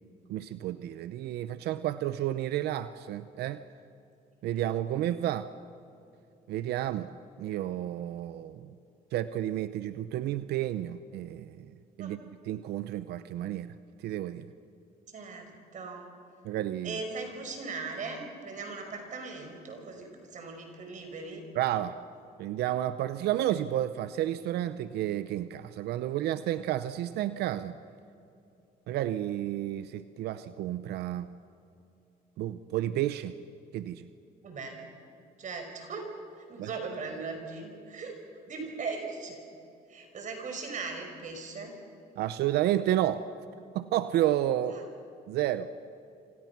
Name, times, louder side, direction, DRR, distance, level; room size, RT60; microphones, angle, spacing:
voice 1, 0.3-3.6 4.4-5.5 6.5-7.1 7.4-8.7 9.1-11.7 12.0-12.2 12.5-13.7 14.0-14.5 16.4-17.0 21.5-22.0 22.4-27.8 28.9-31.3 32.4-33.3 33.7-34.1 36.6-36.7 42.2-43.2 43.7-44.8 45.3-45.7, right 12 dB, 75° right, 12 dB, 0.8 m, -31 dB
voice 2, 15.1-16.1 16.8-21.4 34.4-34.8 35.4-36.1 36.5-38.2 38.5-39.4 39.9-41.7 44.7-44.9, right 4 dB, 50° right, 4 dB, 5.5 m, -39 dB
27.0 x 26.5 x 6.0 m, 2.7 s
cardioid pair, 110°, 17 cm